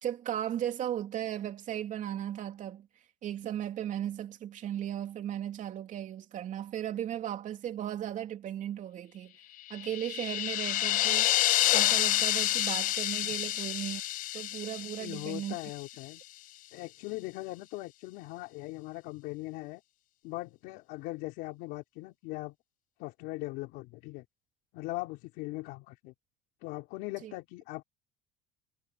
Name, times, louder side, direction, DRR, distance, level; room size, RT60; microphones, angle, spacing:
voice 1, 0.0-2.9 3.2-9.3 9.7-11.3 11.7-14.0 14.3-15.6 27.2-27.3, right 11 dB, 50° right, 3.0 m, -36 dB
sound 1, 9.7-15.9, left 15 dB, 55° left, 0.5 m, -29 dB
voice 2, 14.8-16.2 16.7-19.8 20.2-22.6 23.0-24.2 24.7-26.1 26.6-27.8, left 21 dB, 75° left, 3.7 m, -40 dB
supercardioid pair, 100°, 16 cm